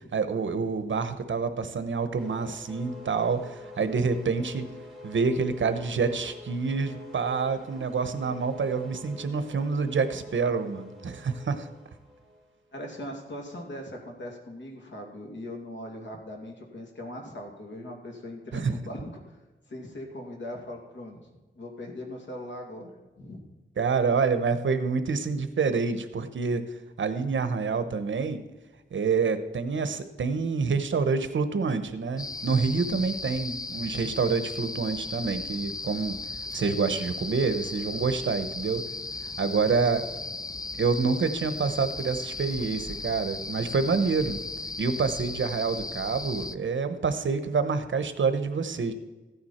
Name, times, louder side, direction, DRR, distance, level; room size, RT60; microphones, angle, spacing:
voice 1, 0.1-4.7 5.0-11.7 18.5-18.8 23.8-26.7 27.0-28.4 28.9-36.2 36.5-38.8 39.4-40.1 40.8-44.4 44.8-48.9, right 5 dB, 75° right, 10 dB, 1.0 m, -27 dB
sound 1, 2.2-12.5, left 1 dB, ahead, 2.4 m, -47 dB
voice 2, 12.7-19.2 19.7-21.2 21.6-23.4, left 1 dB, 65° left, 1 dB, 2.6 m, -40 dB
sound 2, 32.2-46.6, left 3 dB, 20° left, 0.3 m, -36 dB
14.5 x 9.5 x 4.4 m, 1.2 s
wide cardioid pair, 130°, 20 cm